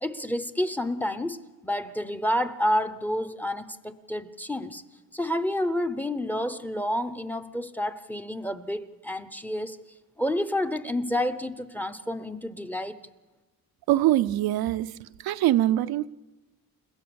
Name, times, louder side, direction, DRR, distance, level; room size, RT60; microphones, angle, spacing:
voice 1, 0.0-4.8 5.1-9.8 10.2-13.0, left 1 dB, 5° left, 0.7 m, -29 dB
voice 2, 13.9-16.1, right 14 dB, 80° right, 0.7 m, -23 dB
30.0 x 16.0 x 7.0 m
cardioid pair, 155°, 36 cm